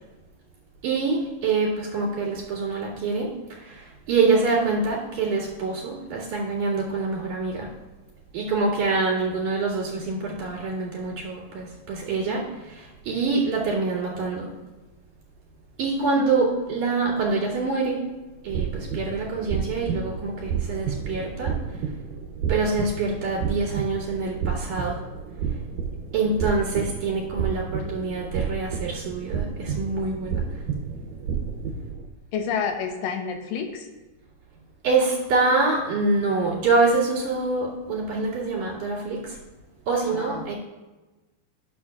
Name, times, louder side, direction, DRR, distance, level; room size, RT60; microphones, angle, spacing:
voice 1, 0.8-3.3 3.7-7.7 8.3-12.4 12.7-14.5 15.8-18.0 18.4-21.5 22.5-25.0 26.1-30.4 34.8-39.2 39.9-40.6, right 3 dB, 65° right, -7 dB, 3.9 m, -25 dB
sound 1, 18.5-32.1, right 6 dB, 85° right, 2.4 m, -31 dB
voice 2, 32.3-33.9 40.1-40.5, left 6 dB, 90° left, 5 dB, 2.5 m, -29 dB
12.0 x 7.2 x 2.3 m, 1.1 s
omnidirectional pair, 3.8 m